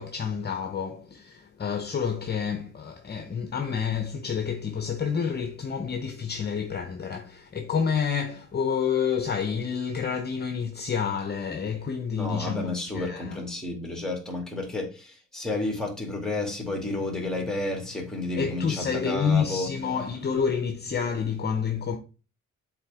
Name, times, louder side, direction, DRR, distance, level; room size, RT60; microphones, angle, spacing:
voice 1, 0.0-13.4 18.4-22.0, left 6 dB, 35° left, 0.8 m, -29 dB
voice 2, 12.1-19.7, left 2 dB, ahead, 2.3 m, -31 dB
7.1 x 4.2 x 3.6 m
cardioid pair, 90°, 30 cm